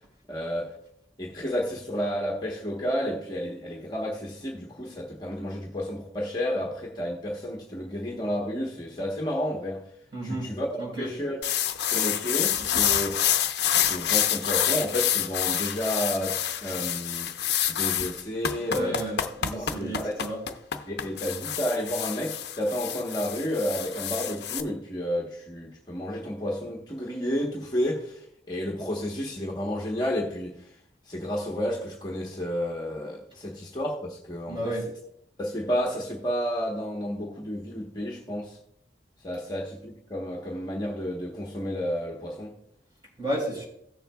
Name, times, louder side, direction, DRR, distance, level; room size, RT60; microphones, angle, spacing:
voice 1, 0.3-0.8 1.2-9.8 10.2-11.4 11.8-13.2 13.9-17.3 17.7-19.0 19.5-20.3 20.9-30.7 31.1-34.8 35.4-38.6 39.2-42.6, equal, 25° left, 1.1 m, -31 dB
voice 2, 10.1-10.5 10.8-11.1 18.6-20.4 34.5-34.8 43.2-43.7, right 1 dB, 25° right, 4.2 m, -32 dB
sound 1, 11.4-24.6, left 10 dB, 70° left, 0.7 m, -27 dB
17.0 x 7.1 x 2.3 m
head